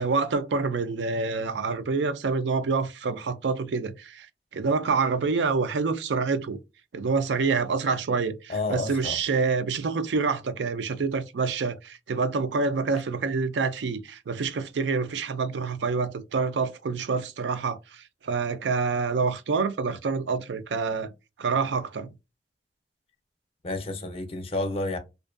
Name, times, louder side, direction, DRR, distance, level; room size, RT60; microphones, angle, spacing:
voice 1, 0.0-4.3 4.5-6.6 6.9-21.1 21.4-22.1, right 4 dB, 80° right, 0.4 m, -27 dB
voice 2, 8.5-9.2 23.6-25.0, left 2 dB, 35° left, 0.5 m, -30 dB
2.4 x 2.2 x 2.4 m
head